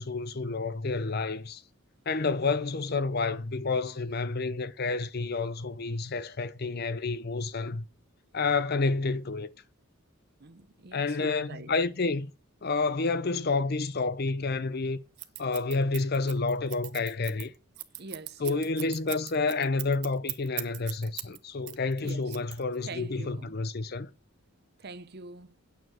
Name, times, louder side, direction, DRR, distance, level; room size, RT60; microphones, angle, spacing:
voice 1, 0.0-1.6 2.1-7.8 8.3-9.5 10.9-12.3 12.6-15.0 15.4-17.5 18.4-24.1, left 3 dB, 45° left, 0.6 m, -29 dB
voice 2, 10.4-11.7 18.0-18.9 22.0-22.3 22.8-23.6 24.8-25.6, right 3 dB, 45° right, 0.7 m, -44 dB
Scissors, 15.2-21.4 21.7-22.9, right 18 dB, 90° right, 0.9 m, -38 dB
9.2 x 6.6 x 6.2 m
head